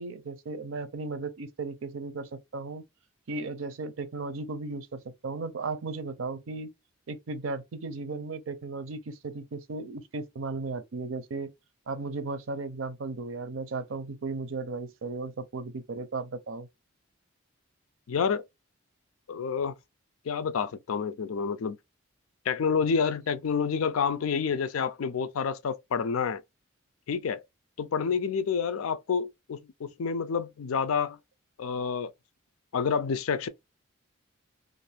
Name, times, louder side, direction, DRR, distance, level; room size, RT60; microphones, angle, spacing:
voice 1, 0.0-2.8 3.3-6.7 7.1-11.5 11.9-16.7, right 3 dB, 75° right, 0.5 m, -35 dB
voice 2, 18.1-18.4 19.3-19.7 20.3-21.8 22.5-26.4 27.1-27.4 27.8-31.2 31.6-32.1 32.7-33.5, left 6 dB, 90° left, 0.4 m, -28 dB
2.5 x 2.5 x 3.3 m
head